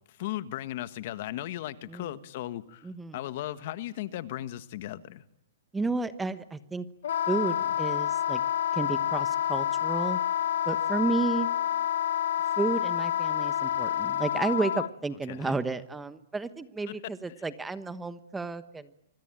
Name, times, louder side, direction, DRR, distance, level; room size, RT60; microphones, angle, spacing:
voice 1, 0.1-5.2 15.3-15.6 16.9-17.1 17.4-17.5, left 14 dB, 45° left, 1.6 m, -37 dB
voice 2, 2.8-3.2 5.7-6.9 7.3-8.4 8.7-10.2 10.7-11.5 12.6-18.9, right 3 dB, 5° right, 1.2 m, -32 dB
Wind instrument woodwind instrument, 7.0-14.9, left 10 dB, 70° left, 1.0 m, -28 dB
25.5 x 25.5 x 9.0 m
hypercardioid pair, 155°, 0 cm